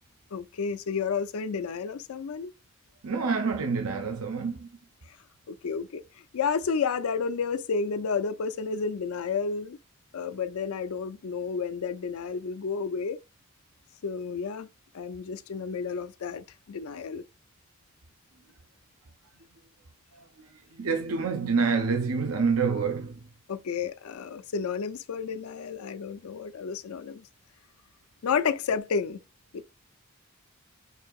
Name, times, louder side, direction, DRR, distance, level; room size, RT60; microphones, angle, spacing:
voice 1, 0.3-2.5 5.5-6.0 6.3-9.8 10.1-13.2 14.0-14.7 14.9-17.2 23.5-27.3 28.2-29.2 29.5-29.6, left 5 dB, 85° left, 0.5 m, -31 dB
voice 2, 3.0-4.7 20.1-23.2, right 5 dB, 90° right, 0.7 m, -27 dB
6.5 x 2.8 x 2.3 m
head